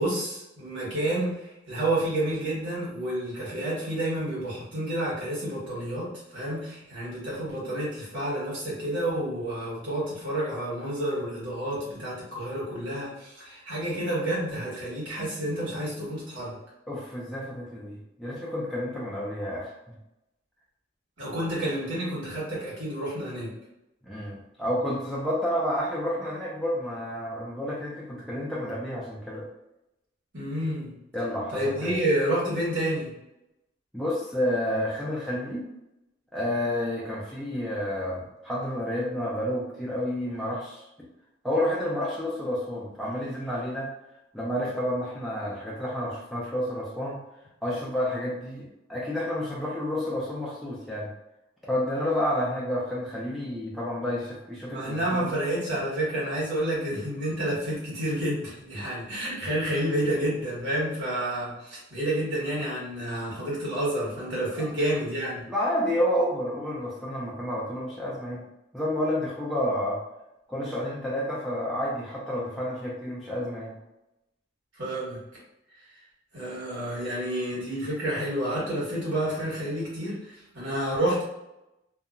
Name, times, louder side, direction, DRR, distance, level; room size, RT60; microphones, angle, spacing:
voice 1, 0.0-16.6 21.2-23.5 30.3-30.9 31.5-33.1 54.7-65.4 74.7-75.2 75.8-76.0 76.3-81.2, right 1 dB, 80° right, -7 dB, 1.4 m, -29 dB
voice 2, 16.9-19.7 24.0-29.5 31.1-31.9 33.9-35.7 36.3-40.8 41.4-43.9 44.3-47.2 47.6-51.1 51.7-55.0 65.5-68.4 68.7-70.0 70.5-73.7, left 1 dB, ahead, -6 dB, 0.4 m, -30 dB
2.7 x 2.2 x 2.5 m, 0.91 s
head